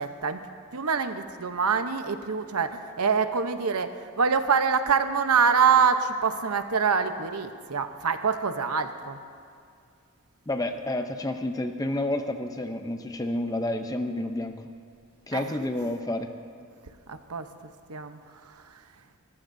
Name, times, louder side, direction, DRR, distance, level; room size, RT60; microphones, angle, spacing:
voice 1, 0.0-9.2 15.3-15.5 17.1-17.5 17.9-18.8, right 6 dB, 85° right, 8 dB, 0.9 m, -25 dB
voice 2, 10.5-14.7 15.3-16.3, left 1 dB, 15° left, 6 dB, 0.7 m, -30 dB
29.0 x 14.5 x 2.7 m, 2.3 s
head